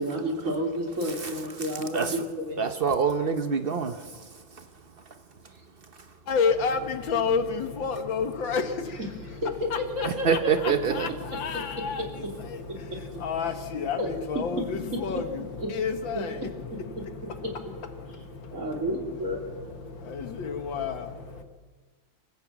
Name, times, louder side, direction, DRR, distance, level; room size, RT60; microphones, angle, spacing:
voice 1, 0.0-2.2 2.5-2.7 10.0-10.5 14.0-14.1 15.6-15.7 18.5-19.4, equal, 35° right, 3.4 m, -30 dB
voice 2, 1.0-2.2 2.6-4.7 10.0-11.1, right 6 dB, 85° right, 0.5 m, -27 dB
voice 3, 6.3-21.4, left 5 dB, 65° left, 1.9 m, -31 dB
25.0 x 15.5 x 7.4 m
omnidirectional pair, 2.3 m